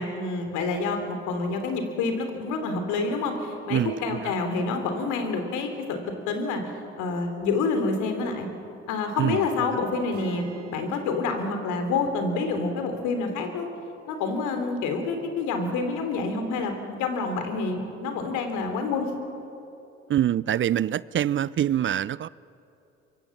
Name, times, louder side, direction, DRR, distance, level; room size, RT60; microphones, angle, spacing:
voice 1, 0.0-6.6 7.0-8.5 8.9-10.4 10.7-13.7 14.1-16.7 17.0-19.1, left 4 dB, 75° left, 3.4 m, -28 dB
voice 2, 3.7-4.3 9.2-9.8 20.1-22.3, right 11 dB, 40° right, 0.5 m, -25 dB
sound 1, 10.1-13.8, right 5 dB, 65° right, 4.5 m, -47 dB
24.5 x 22.0 x 7.3 m
hypercardioid pair, 55°, 31 cm